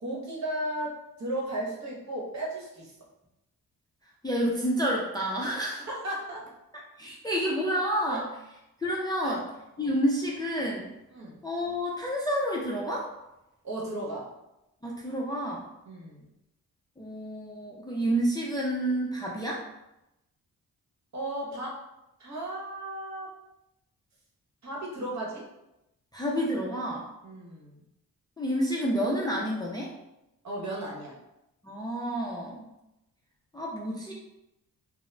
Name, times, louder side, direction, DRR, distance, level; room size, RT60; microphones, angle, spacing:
voice 1, 0.0-2.9 5.9-6.5 8.1-8.2 9.2-9.4 9.8-9.9 11.1-11.4 13.6-14.3 15.9-16.3 21.1-21.8 22.2-23.3 24.6-25.4 27.2-27.8 30.4-31.1, right 1 dB, 50° right, -4 dB, 1.0 m, -35 dB
voice 2, 4.2-5.9 7.0-8.3 8.8-9.5 9.8-10.9 11.4-13.1 14.8-15.7 17.0-19.6 26.1-27.1 28.4-29.9 31.6-32.7 33.5-34.1, equal, 10° left, -3 dB, 0.4 m, -29 dB
2.3 x 2.0 x 3.1 m, 0.89 s
cardioid pair, 70°, 37 cm